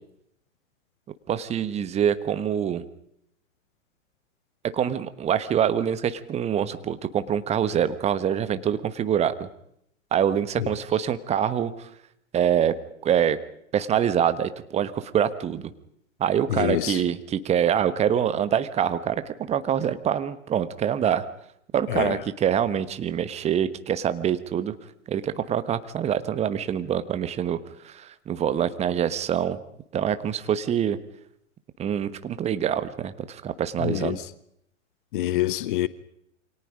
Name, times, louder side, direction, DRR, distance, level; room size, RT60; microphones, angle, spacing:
voice 1, 1.3-2.8 4.7-9.5 10.1-11.7 12.3-12.7 13.0-13.4 13.7-15.7 16.2-21.2 21.7-24.7 25.1-27.6 27.8-29.6 29.9-31.0 31.8-34.2, right 9 dB, 15° right, 1.3 m, -25 dB
voice 2, 16.5-17.0 21.9-22.2 33.8-34.2 35.1-35.9, left 15 dB, 40° left, 1.0 m, -25 dB
28.5 x 24.5 x 5.1 m
figure-of-eight pair, 105°, 39 cm